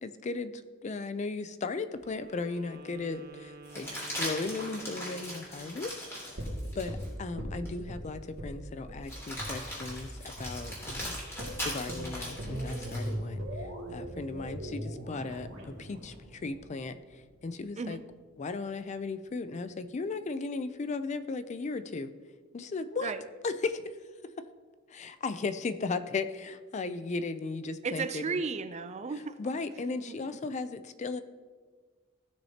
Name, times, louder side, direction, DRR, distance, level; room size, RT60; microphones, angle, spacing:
voice 1, 0.0-3.9 4.1-6.5 6.7-11.2 11.6-18.0 18.4-22.1 22.5-23.1 23.4-24.0 24.9-28.4 29.4-31.2, left 3 dB, 35° left, 12 dB, 0.4 m, -36 dB
Wind instrument woodwind instrument, 1.9-5.5, right 2 dB, 55° right, 1.1 m, -50 dB
sound 1, 2.1-2.2 3.6-7.1 7.6-7.8 9.0-13.1 15.3-16.2, equal, 15° left, 3.0 m, -40 dB
sound 2, 6.4-8.0 8.4-8.6 8.9-9.0 9.4-9.5 9.9-10.0 10.4-10.6 10.9-11.0 11.4-17.4 17.7-17.8, equal, 75° right, 2.2 m, -39 dB
voice 2, 27.8-29.4 30.1-30.2, right 4 dB, 35° right, 12 dB, 0.4 m, -34 dB
15.5 x 6.4 x 2.8 m, 1.5 s
head